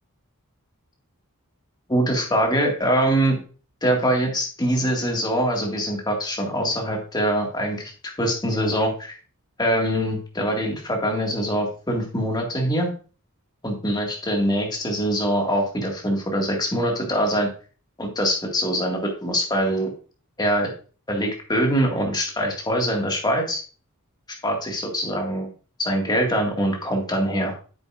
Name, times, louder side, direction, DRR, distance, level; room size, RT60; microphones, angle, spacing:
voice 1, 1.9-3.4 3.8-7.9 8.2-9.1 9.6-12.9 13.6-17.5 18.0-19.9 20.4-20.7 21.1-23.6 24.4-25.5 25.8-27.5, equal, 20° left, 0 dB, 2.0 m, -23 dB
9.1 x 6.9 x 2.5 m, 0.37 s
head